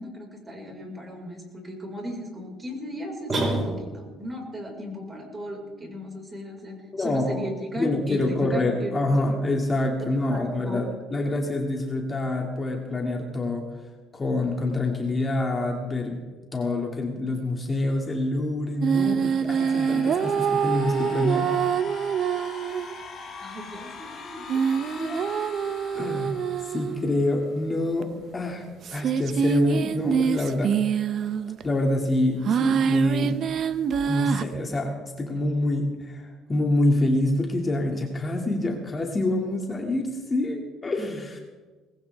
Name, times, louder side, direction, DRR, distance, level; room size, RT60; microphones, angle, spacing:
voice 1, 0.0-9.4 10.3-10.8 23.4-25.4, left 1 dB, 20° right, 1 dB, 5.2 m, -36 dB
sound 1, 3.3-4.2, right 2 dB, 40° right, 4.9 m, -27 dB
voice 2, 6.9-7.4 7.8-13.7 14.1-16.2 16.5-21.5 25.9-28.7 28.9-30.7 31.6-33.4 34.0-41.4, left 1 dB, 25° left, 1 dB, 2.5 m, -26 dB
sound 2, 18.8-23.0 24.5-27.2 28.0-28.1 28.8-31.6 32.5-34.5, right 7 dB, 55° right, 0.8 m, -25 dB
sound 3, 19.6-27.5, left 4 dB, 40° left, 6.1 m, -41 dB
20.0 x 16.0 x 3.6 m, 1.3 s
supercardioid pair, 85°, 0 cm